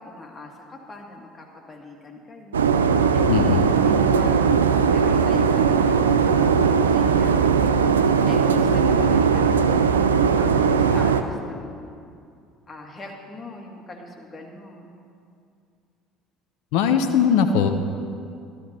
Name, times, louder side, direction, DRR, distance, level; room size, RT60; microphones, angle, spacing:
voice 1, 0.0-6.0 6.5-7.7 8.3-9.8 10.4-12.0 12.7-14.9, left 2 dB, 30° left, 1 dB, 2.3 m, -39 dB
sound 1, 2.5-11.2, right 6 dB, 85° right, 0.4 m, -19 dB
voice 2, 3.3-3.6 16.7-17.7, left 7 dB, 70° left, 7 dB, 0.8 m, -19 dB
13.0 x 13.0 x 4.3 m, 2.4 s
hypercardioid pair, 60°, 0 cm